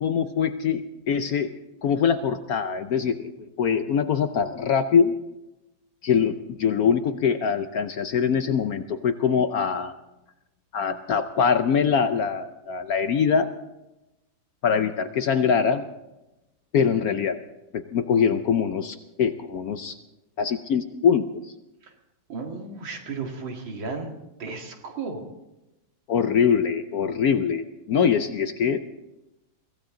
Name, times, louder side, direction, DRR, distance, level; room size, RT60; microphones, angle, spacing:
voice 1, 0.0-1.5 1.8-3.3 3.6-5.1 6.0-9.9 10.7-13.5 14.6-15.8 16.7-17.4 17.7-19.9 20.4-21.4 26.1-28.8, left 6 dB, 65° left, 9 dB, 1.0 m, -23 dB
voice 2, 22.3-25.2, right 4 dB, 80° right, 2 dB, 2.8 m, -34 dB
23.5 x 15.5 x 3.8 m, 0.97 s
omnidirectional pair, 2.1 m